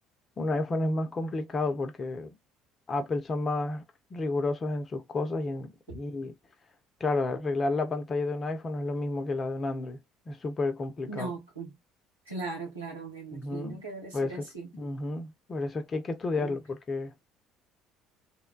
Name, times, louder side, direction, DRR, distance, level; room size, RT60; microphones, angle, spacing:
voice 1, 0.4-2.3 2.9-3.8 4.1-6.3 7.0-10.0 10.3-11.3 13.3-13.8 14.1-14.3 14.7-17.1, left 2 dB, 35° left, 0.7 m, -31 dB
voice 2, 11.1-11.7 12.3-14.7 16.3-16.6, right 3 dB, 85° right, 1.2 m, -39 dB
3.0 x 2.2 x 2.3 m
figure-of-eight pair, 55°, 0 cm